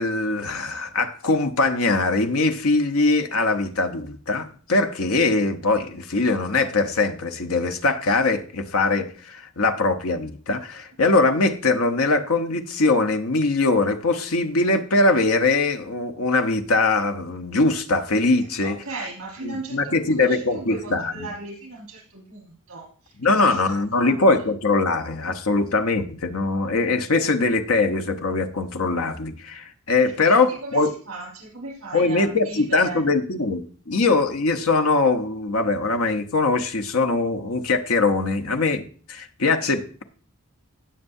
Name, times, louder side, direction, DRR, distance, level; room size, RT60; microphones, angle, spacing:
voice 1, 0.0-18.8 19.4-21.3 23.2-30.9 31.9-40.0, left 3 dB, 80° left, 1.0 m, -22 dB
voice 2, 18.6-23.1 23.4-24.2 30.2-33.1, right 2 dB, 75° right, 4.8 m, -37 dB
17.5 x 6.8 x 2.7 m
head